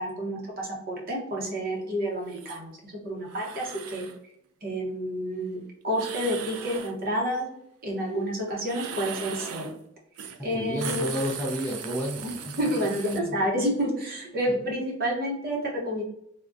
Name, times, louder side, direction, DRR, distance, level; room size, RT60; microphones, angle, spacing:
voice 1, 0.0-4.1 4.6-7.4 7.8-9.7 10.4-11.1 12.2-16.0, equal, 40° right, -1 dB, 0.8 m, -29 dB
sound 1, 2.3-2.6 3.2-4.2 5.9-7.0 8.6-9.8 10.2-10.4 10.7-13.2, right 7 dB, 90° right, 0.4 m, -38 dB
voice 2, 10.5-12.2 13.0-13.3 14.5-14.6, equal, 5° left, -4 dB, 0.5 m, -31 dB
3.5 x 2.1 x 2.5 m, 0.74 s
head